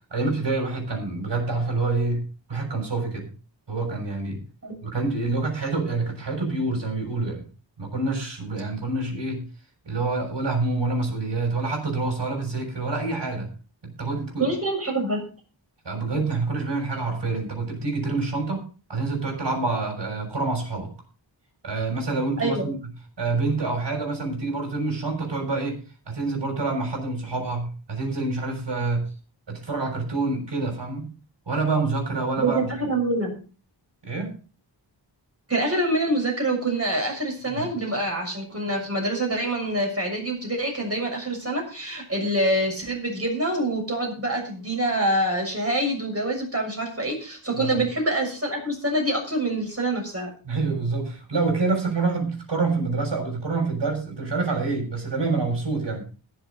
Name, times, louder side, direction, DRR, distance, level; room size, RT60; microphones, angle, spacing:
voice 1, 0.1-2.2 2.5-3.3 3.7-4.4 4.8-7.4 7.8-9.4 9.8-13.5 13.8-14.5 15.8-20.9 21.6-22.7 23.2-25.8 26.1-29.0 29.5-31.1 31.5-32.7 34.0-34.3 37.5-37.7 47.5-47.8 50.4-56.1, right 3 dB, 65° right, 2 dB, 6.7 m, -27 dB
voice 2, 14.4-15.3 22.4-22.7 32.4-33.4 35.5-50.3, right 1 dB, 30° right, 1 dB, 6.8 m, -26 dB
21.0 x 7.7 x 3.9 m, 0.37 s
wide cardioid pair, 80°, 45 cm